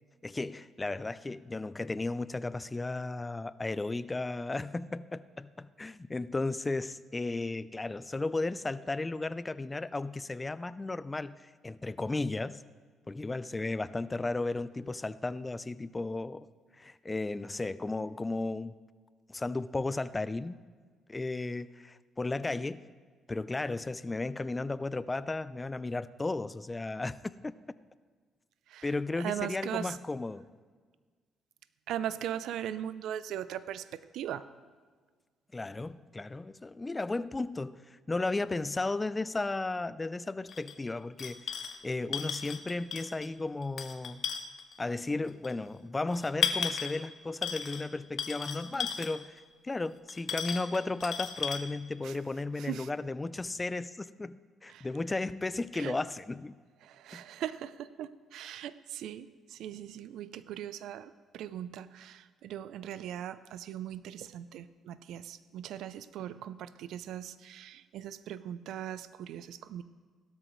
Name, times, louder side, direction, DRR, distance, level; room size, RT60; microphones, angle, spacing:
voice 1, 0.2-12.6 13.1-16.5 16.8-18.7 19.3-20.6 21.1-22.8 23.3-27.2 27.4-27.5 28.8-30.4 35.5-41.5 41.8-44.2 44.8-54.4 54.6-56.6 57.1-57.2, left 2 dB, 20° left, 16 dB, 0.4 m, -34 dB
voice 2, 29.2-30.0 31.9-34.4 52.0-52.1 52.6-52.9 54.7-54.9 55.7-56.0 56.8-69.8, right 10 dB, 80° right, 15 dB, 0.5 m, -39 dB
sound 1, 40.5-40.7 41.2-41.8 42.1-43.3 43.6-44.7 45.4-45.5 46.1-47.0 47.4-47.9 48.2-49.2 50.1-51.6, left 7 dB, 55° left, 1.0 m, -34 dB
16.5 x 13.0 x 3.1 m, 1.5 s
cardioid pair, 95°, 0 cm